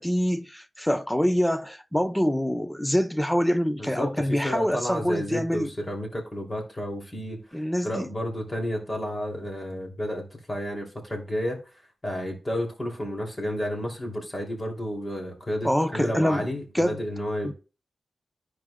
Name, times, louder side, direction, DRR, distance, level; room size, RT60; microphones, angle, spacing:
voice 1, 0.0-5.7 7.5-8.1 15.6-16.5 16.7-17.0 17.4-17.5, equal, 5° left, 0.7 m, -25 dB
voice 2, 3.8-11.6 12.0-17.5, equal, 25° left, 2.9 m, -31 dB
14.0 x 4.8 x 2.3 m
cardioid pair, 75°, 0 cm